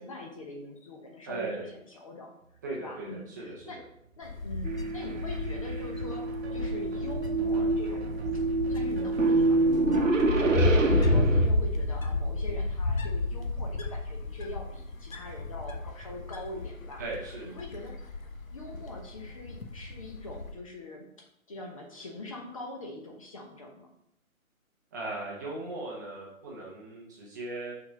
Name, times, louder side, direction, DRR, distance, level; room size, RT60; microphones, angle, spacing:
voice 1, 0.0-2.3 2.8-3.8 4.2-8.2 8.7-17.0 17.4-17.9 18.5-21.0 21.5-23.9, left 2 dB, 25° left, 0 dB, 0.8 m, -43 dB
voice 2, 1.3-1.7 2.6-3.5 17.0-17.5 24.9-27.7, right 2 dB, 15° right, -5 dB, 0.8 m, -37 dB
sound 1, 2.4-2.7 3.0-9.8, right 4 dB, 50° right, 0.7 m, -45 dB
Wind, 4.2-20.5, left 2 dB, 75° left, 1.0 m, -31 dB
sound 2, 4.6-11.5, right 3 dB, 65° right, 1.1 m, -27 dB
5.7 x 4.3 x 5.2 m, 0.75 s
figure-of-eight pair, 140°, 41 cm